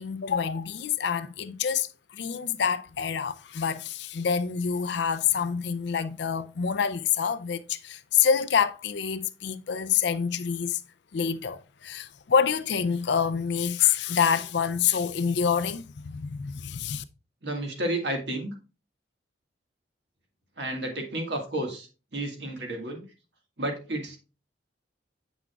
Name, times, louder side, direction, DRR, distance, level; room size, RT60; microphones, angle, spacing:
voice 1, 0.0-10.8 11.1-17.0, left 7 dB, 65° left, 0.4 m, -27 dB
voice 2, 17.4-18.5 20.6-21.9 22.1-23.0 23.6-24.2, right 1 dB, 60° right, 1.7 m, -31 dB
7.9 x 6.0 x 2.3 m
head